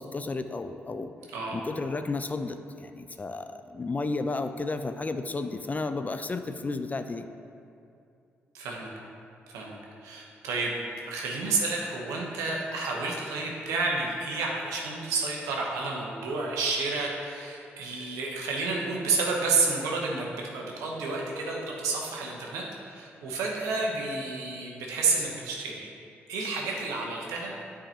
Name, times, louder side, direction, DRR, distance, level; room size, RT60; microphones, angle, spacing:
voice 1, 0.0-1.1 1.5-7.3, left 3 dB, 30° left, 8 dB, 0.4 m, -32 dB
voice 2, 8.5-8.9 9.5-9.8 10.0-10.8 11.1-25.9 26.3-27.5, right 3 dB, 85° right, -2 dB, 0.9 m, -30 dB
8.8 x 4.8 x 2.9 m, 2.5 s
supercardioid pair, 45°, 5 cm